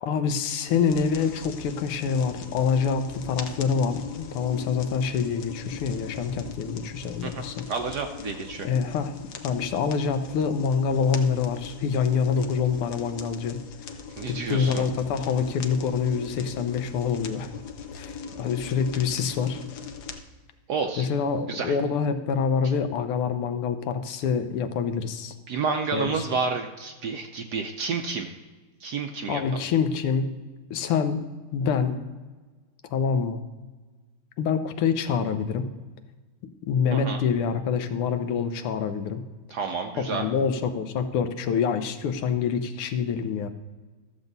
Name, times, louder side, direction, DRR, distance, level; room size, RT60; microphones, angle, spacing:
voice 1, 0.0-7.6 8.6-9.1 9.4-13.6 14.3-17.5 17.9-19.6 21.0-25.3 25.9-26.2 29.3-30.3 30.7-31.2 31.5-32.0 32.9-33.4 34.4-35.7 36.7-39.2 40.0-43.5, left 6 dB, 85° left, 8 dB, 1.8 m, -26 dB
sound 1, 0.7-20.2, left 6 dB, 60° left, 1.2 m, -40 dB
voice 2, 7.2-8.7 14.2-14.9 20.7-21.1 21.5-21.7 25.5-28.3 28.8-29.6 36.9-37.2 39.5-40.3, right 5 dB, 70° right, 5 dB, 1.0 m, -30 dB
13.5 x 7.3 x 4.0 m, 1.3 s
omnidirectional pair, 2.4 m